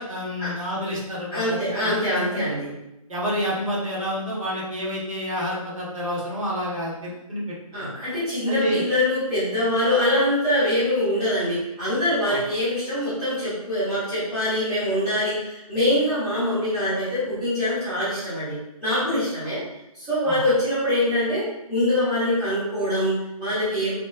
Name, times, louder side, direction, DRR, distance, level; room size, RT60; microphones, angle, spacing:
voice 1, 0.0-2.4 3.1-7.5 8.5-8.8 12.3-12.4 20.2-20.4, equal, 60° right, -5 dB, 1.1 m, -29 dB
voice 2, 1.3-2.7 7.7-19.6 19.9-23.9, left 1 dB, 5° right, -15 dB, 0.5 m, -24 dB
3.0 x 2.2 x 2.3 m, 0.89 s
figure-of-eight pair, 150°, 19 cm